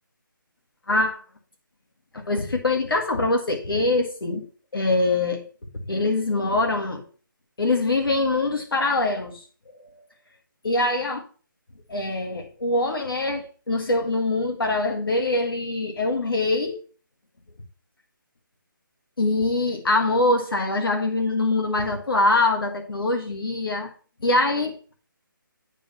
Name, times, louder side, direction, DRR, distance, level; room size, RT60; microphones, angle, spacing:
voice 1, 0.9-1.2 2.1-4.4 4.7-5.5 5.9-7.0 7.6-9.4 9.7-10.1 10.6-11.2 11.9-16.8 19.2-23.9 24.2-24.9, left 2 dB, 85° left, 1.8 m, -23 dB
9.2 x 3.5 x 5.6 m
hypercardioid pair, 170°, 12 cm